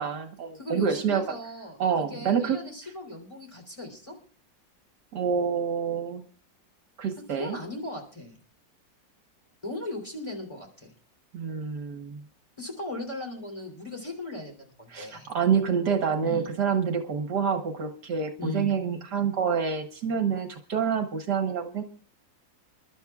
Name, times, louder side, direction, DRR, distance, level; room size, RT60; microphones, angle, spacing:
voice 1, 0.0-1.2 1.8-2.6 5.1-6.2 7.0-7.6 11.3-12.2 14.9-21.8, right 6 dB, 65° right, 7 dB, 1.7 m, -27 dB
voice 2, 0.5-1.8 2.1-4.2 7.3-8.4 9.6-10.9 12.6-15.3 16.2-16.5 18.4-18.7, left 1 dB, 15° left, 2 dB, 3.4 m, -37 dB
28.0 x 12.0 x 2.4 m, 0.37 s
omnidirectional pair, 2.0 m